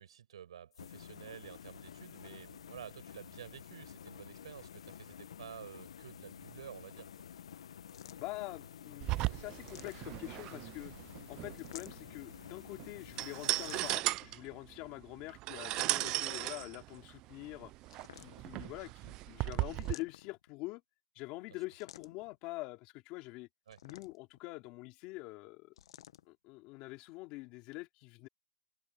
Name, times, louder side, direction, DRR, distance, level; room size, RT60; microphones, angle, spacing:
voice 1, 0.0-7.1 23.7-23.8, right 9 dB, 70° right, 6.2 m, -51 dB
sound 1, 0.7-13.9, left 8 dB, 80° left, 1.0 m, -51 dB
sound 2, 7.9-8.5 9.5-10.4 11.6-12.2 13.5-14.2 15.5-16.3 17.9-18.6 19.7-20.5 21.8-22.3 23.7-24.4 25.8-26.2, left 10 dB, 60° left, 1.3 m, -53 dB
voice 2, 8.2-10.9 11.3-17.7 18.1-20.8 21.1-23.5 23.8-25.7 26.3-28.3, left 21 dB, 25° left, 3.0 m, -45 dB
sound 3, 9.0-19.9, right 19 dB, 20° right, 0.3 m, -37 dB
hypercardioid pair, 170°, 3 cm